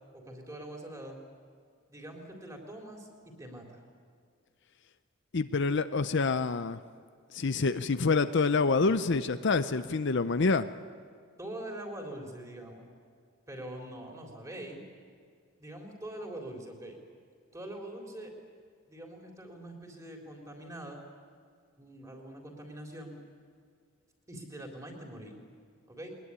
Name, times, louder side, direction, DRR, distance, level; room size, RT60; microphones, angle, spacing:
voice 1, 0.1-1.2 1.9-3.8 11.4-12.9 13.5-14.8 15.6-17.0 17.5-18.3 18.9-21.0 21.8-23.2 24.3-25.4 25.9-26.1, right 1 dB, 15° right, 1 dB, 3.7 m, -43 dB
voice 2, 5.3-6.8 7.3-10.7, left 4 dB, 55° left, 11 dB, 0.6 m, -27 dB
22.0 x 20.0 x 9.8 m, 2.1 s
head